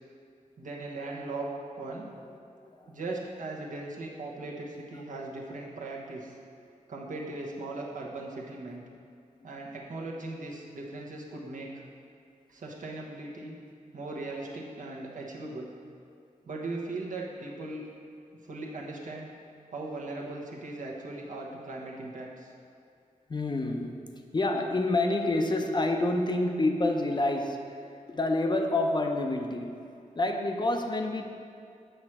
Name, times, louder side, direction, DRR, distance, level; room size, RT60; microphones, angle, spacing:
voice 1, 0.6-2.1 2.9-6.4 6.9-8.8 9.4-11.8 12.5-13.6 13.9-15.7 16.4-17.8 18.4-19.3 19.7-22.5, right 2 dB, 70° right, -2 dB, 1.0 m, -38 dB
voice 2, 2.7-3.0 23.3-24.1 24.3-29.9 30.2-31.3, left 2 dB, 35° left, 3 dB, 0.5 m, -28 dB
7.7 x 3.2 x 5.9 m, 2.4 s
wide cardioid pair, 80°, 14 cm